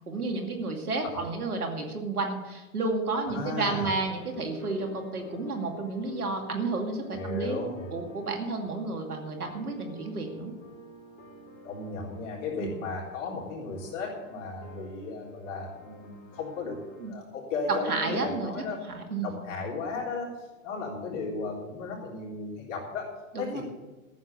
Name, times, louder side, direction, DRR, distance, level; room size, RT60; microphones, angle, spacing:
voice 1, 0.0-10.5 12.6-12.8 17.0-17.1 17.8-18.5 18.9-19.4 23.3-23.6, right 3 dB, 85° right, 3 dB, 2.5 m, -31 dB
sound 1, 3.0-17.1, left 2 dB, 20° left, 4.1 m, -49 dB
voice 2, 3.3-3.9 7.1-8.1 11.6-16.8 17.1-18.8 19.2-20.3 20.6-23.6, left 3 dB, 50° left, -3 dB, 3.7 m, -35 dB
14.0 x 7.3 x 8.0 m, 1.2 s
hypercardioid pair, 100°, 43 cm